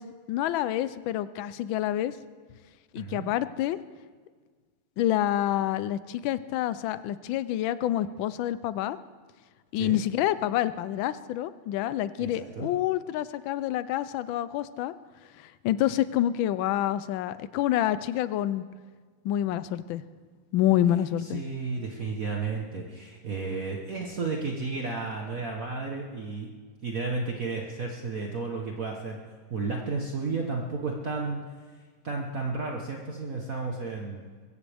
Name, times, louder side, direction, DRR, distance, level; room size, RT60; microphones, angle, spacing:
voice 1, 0.0-2.1 2.9-3.8 5.0-9.0 9.7-14.9 15.4-18.6 19.2-20.0 20.5-21.4, left 12 dB, 75° left, 15 dB, 1.3 m, -27 dB
voice 2, 3.0-3.3 9.7-10.0 12.2-12.7 21.2-26.5 26.8-29.2 29.5-31.4 32.0-34.2, right 4 dB, 45° right, 0 dB, 1.4 m, -32 dB
22.0 x 15.5 x 3.5 m, 1.5 s
omnidirectional pair, 2.3 m